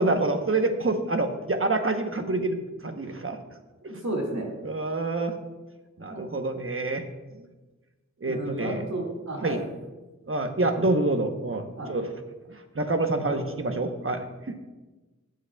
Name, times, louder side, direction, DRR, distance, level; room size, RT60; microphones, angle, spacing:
voice 1, 0.0-3.4 4.6-5.4 6.0-7.1 7.3-7.4 8.2-8.8 9.4-9.7 10.3-12.1 12.5-14.6, right 2 dB, 45° right, 6 dB, 1.0 m, -27 dB
voice 2, 3.8-4.5 6.1-6.2 8.2-9.6 11.8-11.9 13.2-13.4, right 2 dB, 65° right, -2 dB, 2.1 m, -32 dB
15.5 x 7.7 x 2.3 m, 1.1 s
wide cardioid pair, 50°, 30 cm